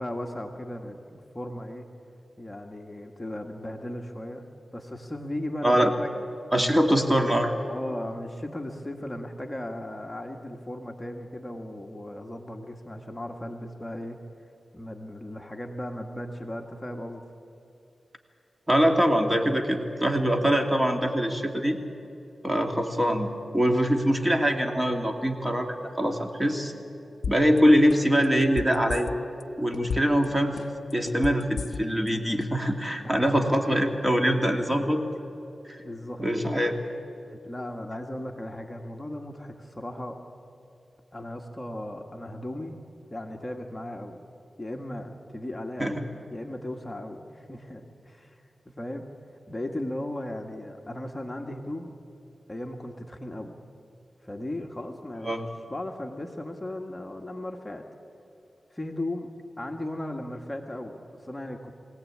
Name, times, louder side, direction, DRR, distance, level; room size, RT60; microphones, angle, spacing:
voice 1, 0.0-1.9 2.4-6.1 6.6-7.1 7.7-14.2 14.7-17.2 33.0-33.3 34.5-34.8 35.8-36.3 37.3-40.2 41.1-42.8 43.1-44.2 44.6-49.1 49.5-52.0 52.5-53.6 54.2-57.8 58.7-61.7, left 1 dB, 20° left, 3 dB, 1.7 m, -37 dB
voice 2, 6.5-7.5 18.7-21.8 22.4-26.7 27.3-29.1 29.6-30.6 30.9-35.0 35.7-35.8 36.2-36.7 45.8-45.9 55.2-55.4, equal, 15° right, 4 dB, 2.5 m, -23 dB
sound 1, 27.2-27.6 27.9-29.4 29.7-30.2 30.6-32.1 32.4-32.5, left 6 dB, 85° left, 0.4 m, -33 dB
24.0 x 17.5 x 8.7 m, 2.9 s
cardioid pair, 60°, 0 cm